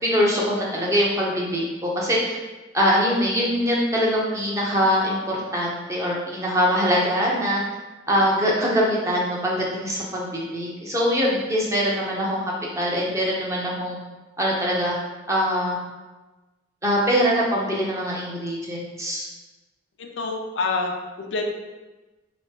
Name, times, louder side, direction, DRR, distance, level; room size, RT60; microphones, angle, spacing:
voice 1, 0.0-2.4 2.7-7.6 8.1-12.4 12.8-14.0 14.4-15.0 15.3-15.8 16.8-19.2, equal, 15° right, -4 dB, 0.8 m, -23 dB
voice 2, 20.0-21.4, left 3 dB, 90° left, 2 dB, 0.6 m, -27 dB
3.2 x 3.1 x 4.6 m, 1.2 s
head